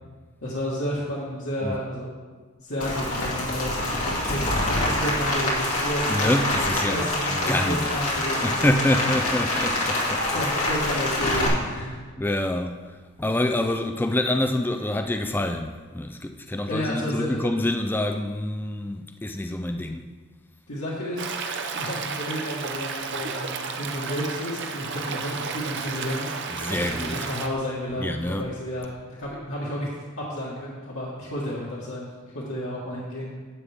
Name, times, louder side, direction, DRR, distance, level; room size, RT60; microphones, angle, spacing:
voice 1, 0.4-2.1 2.6-4.0 4.3-8.9 10.3-12.1 16.7-17.4 20.7-21.3 21.7-26.4 26.7-28.9 29.2-29.9 30.2-32.1 32.3-33.3, equal, 60° left, 1.7 m, -31 dB
Rain, 2.8-11.5, left 1 dB, 80° left, 2.5 m, -26 dB
voice 2, 6.1-7.9 8.2-10.3 12.2-12.8 13.2-20.1 26.6-27.3 28.0-28.5, left 1 dB, 10° left, 0.3 m, -26 dB
Stream, 21.2-27.5, right 5 dB, 50° right, 0.7 m, -32 dB
11.0 x 8.4 x 3.5 m
head